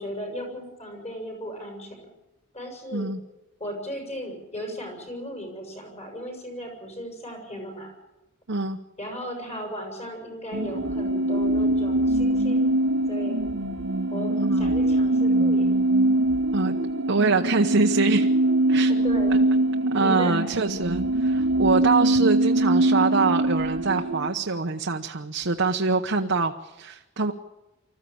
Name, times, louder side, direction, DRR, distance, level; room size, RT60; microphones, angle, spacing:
voice 1, 0.0-2.1 2.5-3.1 3.6-7.9 9.0-12.7 13.1-13.4 14.1-15.8 18.9-19.4 20.0-20.3, equal, 35° left, 2 dB, 7.0 m, -36 dB
voice 2, 8.5-8.8 14.4-14.7 16.5-16.8 17.1-18.3 18.7-18.9 19.9-27.3, right 3 dB, 65° right, 3 dB, 1.0 m, -24 dB
sound 1, 10.5-24.3, right 1 dB, 80° right, 1.3 m, -23 dB
25.5 x 14.5 x 8.7 m, 1.0 s
head